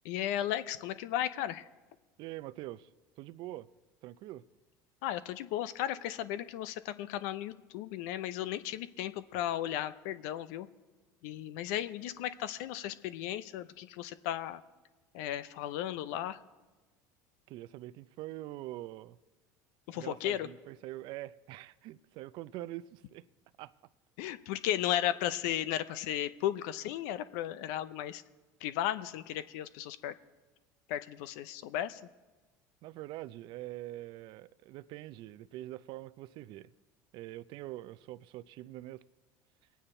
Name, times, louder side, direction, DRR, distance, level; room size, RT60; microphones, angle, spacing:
voice 1, 0.0-1.7 5.0-10.7 11.2-14.6 15.1-16.4 19.9-20.5 24.2-28.2 28.6-30.1 30.9-32.0, left 12 dB, 75° left, 0.6 m, -35 dB
voice 2, 2.2-2.9 3.2-3.7 4.0-4.4 9.3-9.4 17.5-19.2 19.9-23.3 23.6-23.7 32.8-36.7 37.1-39.0, right 15 dB, 60° right, 0.5 m, -44 dB
21.5 x 9.2 x 4.3 m
supercardioid pair, 95°, 9 cm